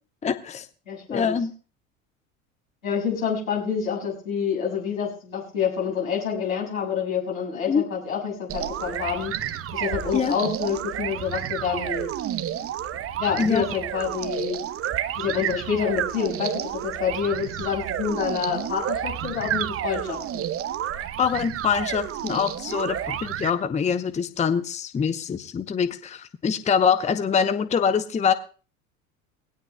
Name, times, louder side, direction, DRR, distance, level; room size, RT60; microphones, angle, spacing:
voice 1, 0.2-0.7 1.1-1.5 7.7-7.8 10.1-10.4 13.4-13.6 21.2-28.3, left 6 dB, 15° left, 12 dB, 0.8 m, -24 dB
voice 2, 0.9-1.3 2.8-9.3 9.7-12.1 13.2-14.6 15.2-20.4 22.7-22.8, left 7 dB, 75° left, -1 dB, 6.8 m, -27 dB
sound 1, 8.5-23.5, right 11 dB, 35° right, 0.9 m, -30 dB
21.0 x 17.5 x 2.3 m, 0.38 s
figure-of-eight pair, 70°, 42 cm